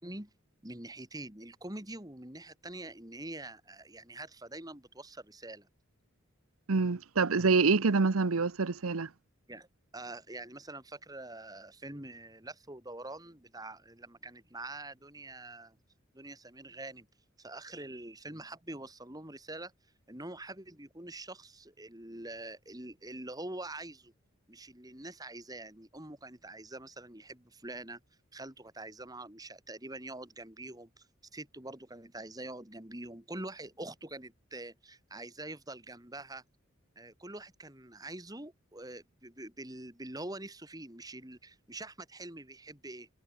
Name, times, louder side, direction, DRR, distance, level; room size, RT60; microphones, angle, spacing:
voice 1, 0.6-5.7 9.5-9.7 9.9-15.8 16.1-17.1 17.4-19.7 20.1-24.1 24.5-28.0 28.3-31.1 31.3-36.4 37.0-43.1, right 2 dB, 15° right, 3.1 m, -45 dB
voice 2, 6.7-9.1, right 4 dB, 85° right, 0.8 m, -26 dB
head